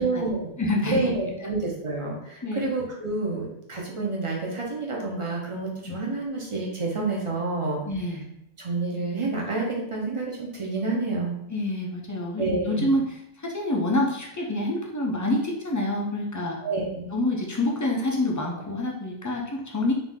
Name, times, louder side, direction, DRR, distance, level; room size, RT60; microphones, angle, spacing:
voice 1, 0.0-0.5 0.9-7.8 8.6-11.3 12.4-12.9 16.6-17.1, right 3 dB, 30° right, -2 dB, 0.9 m, -28 dB
voice 2, 0.6-1.1 2.4-2.7 5.9-6.0 7.8-8.3 11.5-16.6 17.1-19.9, left 1 dB, 20° left, -1 dB, 0.5 m, -27 dB
4.0 x 2.7 x 3.6 m, 0.79 s
omnidirectional pair, 1.1 m